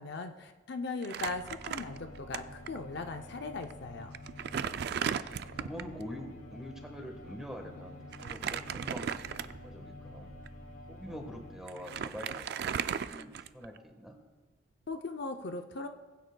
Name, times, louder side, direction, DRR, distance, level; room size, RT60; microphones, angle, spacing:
voice 1, 0.0-4.1 14.9-15.9, left 3 dB, 55° left, 6 dB, 0.5 m, -39 dB
Crumpling crinkling, 1.0-2.4 2.7-2.8 3.6-3.7 4.1-5.9 8.1-9.7 10.3-10.5 11.4-11.5 11.7-13.8, right 8 dB, 50° right, 0.3 m, -36 dB
sound 1, 1.2-11.6, equal, 25° left, 1.4 m, -51 dB
Bowed string instrument, 1.8-13.0, left 3 dB, 70° left, 1.1 m, -53 dB
voice 2, 5.3-10.3 10.9-14.2, equal, 5° right, 2 dB, 1.3 m, -45 dB
20.5 x 9.1 x 2.2 m, 1.3 s
head